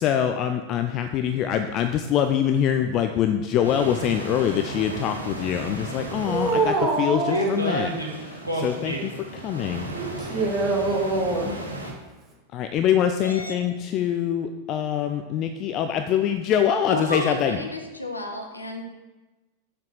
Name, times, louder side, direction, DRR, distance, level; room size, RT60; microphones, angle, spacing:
voice 1, 0.0-7.9 8.2-9.9 12.5-17.6, left 9 dB, 35° left, 7 dB, 0.5 m, -24 dB
sound 1, 3.6-11.9, right 2 dB, 85° right, 1.6 m, -33 dB
voice 2, 6.3-7.5 9.9-11.6, right 3 dB, 20° right, -1 dB, 2.3 m, -24 dB
voice 3, 13.2-13.5 16.9-18.8, left 1 dB, 85° left, 4 dB, 1.2 m, -31 dB
7.4 x 5.9 x 6.4 m, 1.2 s
figure-of-eight pair, 90°, 0 cm